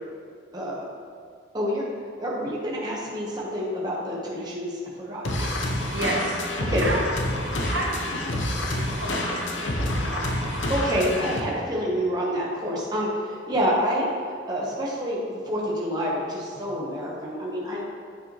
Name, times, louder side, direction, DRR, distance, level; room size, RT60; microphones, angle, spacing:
voice 1, 0.5-0.9 1.5-1.8 2.2-5.9 6.7-6.8 10.5-17.8, equal, 20° right, -5 dB, 1.1 m, -28 dB
sound 1, 5.2-11.4, left 1 dB, 80° left, 0.8 m, -27 dB
voice 2, 5.9-7.1 7.6-10.6, right 2 dB, 65° right, -2 dB, 1.1 m, -33 dB
9.0 x 6.0 x 3.0 m, 2.2 s
head